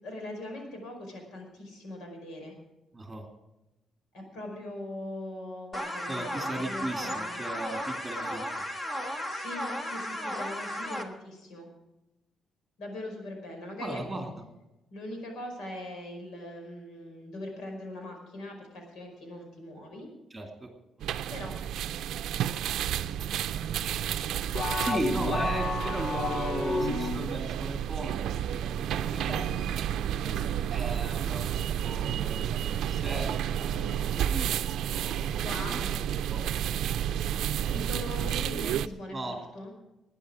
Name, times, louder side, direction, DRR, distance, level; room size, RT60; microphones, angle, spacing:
voice 1, 0.0-2.5 4.1-7.4 9.3-11.7 12.8-14.2 14.9-20.1 21.3-21.5 29.3-29.7 30.2-30.5 35.4-35.9 37.7-39.7, left 1 dB, 90° left, 3 dB, 5.2 m, -41 dB
voice 2, 2.9-3.2 6.1-8.6 13.8-14.3 20.3-20.7 21.0-21.1 23.8-24.1 24.8-29.3 30.7-34.5 34.8-36.4 37.6-38.1 39.1-39.4, right 2 dB, 10° right, 2 dB, 2.6 m, -37 dB
sound 1, 5.7-11.0, equal, 20° left, 1.3 m, -35 dB
sound 2, 21.0-38.9, right 10 dB, 85° right, 0.5 m, -31 dB
sound 3, 24.5-27.4, left 4 dB, 35° left, 0.7 m, -31 dB
20.0 x 9.8 x 5.0 m, 0.95 s
cardioid pair, 170°, 0 cm